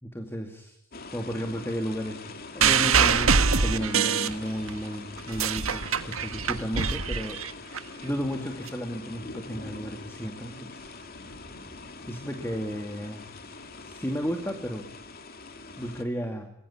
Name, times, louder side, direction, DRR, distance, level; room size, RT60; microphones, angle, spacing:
voice 1, 0.0-0.8 1.1-11.0 12.1-13.3 13.9-14.9 15.8-16.5, equal, 10° left, 5 dB, 2.3 m, -33 dB
sound 1, 0.9-16.0, left 3 dB, 45° left, 2.6 m, -43 dB
sound 2, 2.6-4.8 5.2-7.8 8.7-8.8, right 6 dB, 85° right, 1.5 m, -24 dB
26.0 x 22.0 x 9.8 m, 0.70 s
head